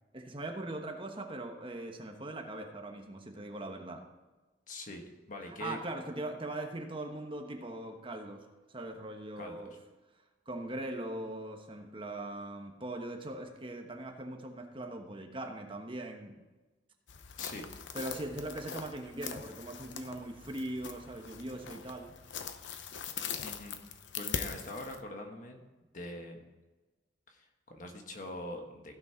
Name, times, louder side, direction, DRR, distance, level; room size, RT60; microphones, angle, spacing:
voice 1, 0.1-4.0 5.6-9.7 10.5-16.4 17.9-22.1, right 1 dB, 30° right, 3 dB, 1.2 m, -40 dB
voice 2, 4.7-5.8 9.4-9.6 17.4-17.9 23.4-23.7 24.2-25.6 25.9-26.4 27.3-28.9, left 1 dB, 45° left, 3 dB, 1.3 m, -43 dB
sound 1, 17.1-25.0, left 7 dB, 85° left, 0.8 m, -42 dB
16.0 x 6.2 x 4.5 m, 1.2 s
head